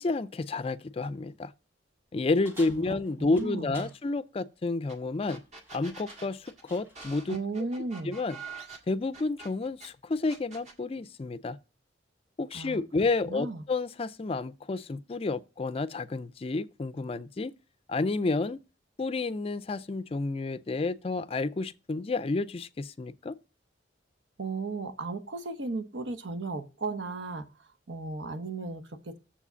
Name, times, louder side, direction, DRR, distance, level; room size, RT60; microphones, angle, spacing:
voice 1, 0.0-1.5 2.1-5.4 5.7-7.4 8.0-8.4 8.9-11.6 12.4-17.5 17.9-18.6 19.0-23.3, left 3 dB, 30° left, 0.4 m, -30 dB
sound 1, 2.4-4.0 5.5-5.8 6.1-7.2, equal, 10° right, 2.0 m, -51 dB
voice 2, 2.7-3.9 7.3-8.1 12.5-12.8 13.2-13.6 24.4-29.2, right 3 dB, 85° right, 1.0 m, -35 dB
sound 2, 4.9-5.0 5.3-9.9 10.3-10.8, right 4 dB, 40° right, 1.7 m, -45 dB
7.2 x 4.9 x 6.7 m
head